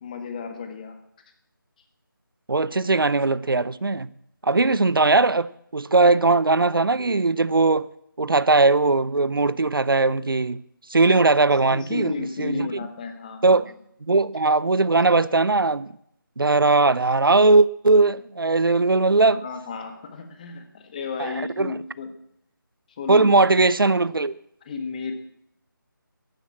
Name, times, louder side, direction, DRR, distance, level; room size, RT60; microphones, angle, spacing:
voice 1, 0.0-1.0 11.7-13.6 19.3-22.1 22.9-23.3 24.6-25.1, left 5 dB, 20° left, 1.5 m, -33 dB
voice 2, 2.5-4.1 4.4-7.9 8.2-10.6 10.9-12.7 13.4-13.7 14.0-15.9 16.4-19.4 21.2-21.7 23.1-24.3, right 3 dB, 75° right, 0.7 m, -19 dB
14.0 x 11.0 x 7.3 m
figure-of-eight pair, 160°, 12 cm